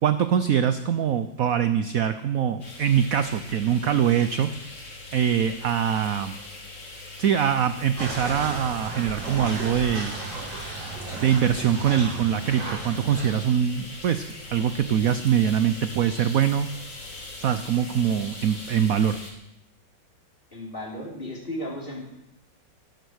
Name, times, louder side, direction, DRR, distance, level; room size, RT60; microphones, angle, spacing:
voice 1, 0.0-4.5 5.1-6.4 7.2-10.1 11.2-14.2 14.5-16.7 17.4-19.2, right 9 dB, 65° right, 11 dB, 0.9 m, -23 dB
sound 1, 2.6-19.3, left 2 dB, 65° left, 3.6 m, -41 dB
sound 2, 8.0-13.3, right 2 dB, 85° right, 6.8 m, -34 dB
voice 2, 20.5-22.0, left 1 dB, 30° left, -1 dB, 3.5 m, -34 dB
13.0 x 12.0 x 6.4 m, 0.85 s
omnidirectional pair, 2.0 m